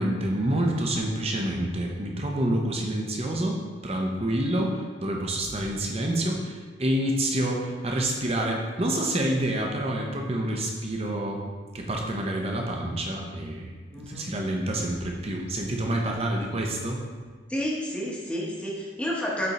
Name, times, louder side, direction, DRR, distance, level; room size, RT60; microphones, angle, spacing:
voice 1, 0.0-11.4 11.7-13.7 14.0-17.0, right 1 dB, 30° right, 0 dB, 0.7 m, -28 dB
voice 2, 13.9-14.3 16.3-16.4 17.5-19.5, equal, 5° left, -4 dB, 1.0 m, -30 dB
6.7 x 3.6 x 4.2 m, 1.5 s
head